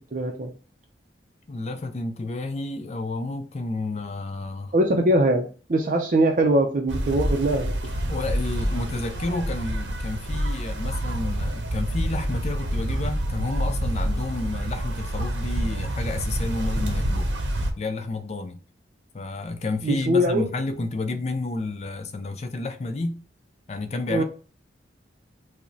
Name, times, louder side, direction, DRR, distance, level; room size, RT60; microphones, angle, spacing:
voice 1, 0.1-0.5 4.7-7.7 19.8-20.5 24.1-24.2, right 1 dB, 45° right, 0.5 m, -22 dB
voice 2, 1.5-4.7 8.1-17.3 17.8-18.6 19.1-23.2 23.7-24.2, left 2 dB, 35° left, 0.4 m, -30 dB
sound 1, 6.9-17.7, right 1 dB, 80° right, 0.7 m, -27 dB
4.8 x 2.1 x 2.6 m
head